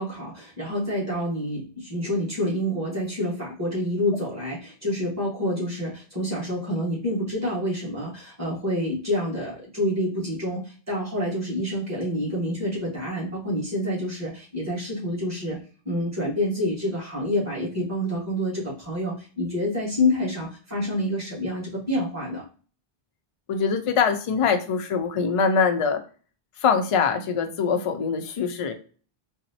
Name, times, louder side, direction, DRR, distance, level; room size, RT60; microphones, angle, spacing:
voice 1, 0.0-15.6 15.8-22.5, left 1 dB, 15° right, -6 dB, 1.3 m, -28 dB
voice 2, 23.5-26.0 26.6-28.7, left 6 dB, 60° left, 6 dB, 0.3 m, -23 dB
4.0 x 2.0 x 2.7 m, 0.39 s
omnidirectional pair, 1.0 m